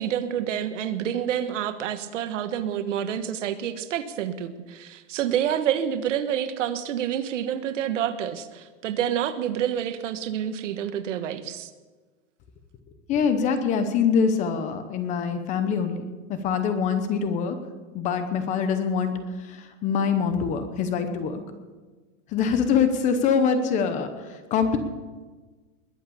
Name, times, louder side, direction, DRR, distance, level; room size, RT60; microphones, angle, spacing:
voice 1, 0.0-11.7, right 9 dB, 70° right, 10 dB, 1.4 m, -28 dB
voice 2, 13.1-16.1 16.4-17.6 17.9-21.4 22.3-24.8, left 6 dB, 20° left, 9 dB, 0.9 m, -24 dB
21.0 x 8.4 x 7.0 m, 1.3 s
supercardioid pair, 170°, 38 cm